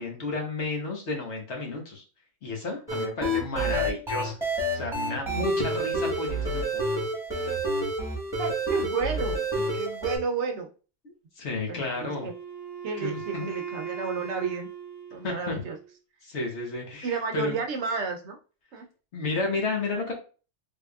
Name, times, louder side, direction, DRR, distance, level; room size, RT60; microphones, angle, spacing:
voice 1, 0.0-2.0 2.4-4.4 4.7-6.9 11.4-12.3 13.0-13.5 15.2-15.5 16.2-17.5 19.1-20.1, left 3 dB, 60° left, 1 dB, 1.3 m, -32 dB
sound 1, 2.9-10.2, right 1 dB, ahead, 1.2 m, -28 dB
voice 2, 8.4-10.7 11.7-12.3 12.8-14.7 15.1-15.8 17.0-18.4 18.7-18.9 19.9-20.1, right 5 dB, 65° right, 4 dB, 0.9 m, -32 dB
Wind instrument woodwind instrument, 11.9-15.9, right 7 dB, 20° left, 0.9 m, -39 dB
3.6 x 3.3 x 2.3 m, 0.35 s
omnidirectional pair, 1.3 m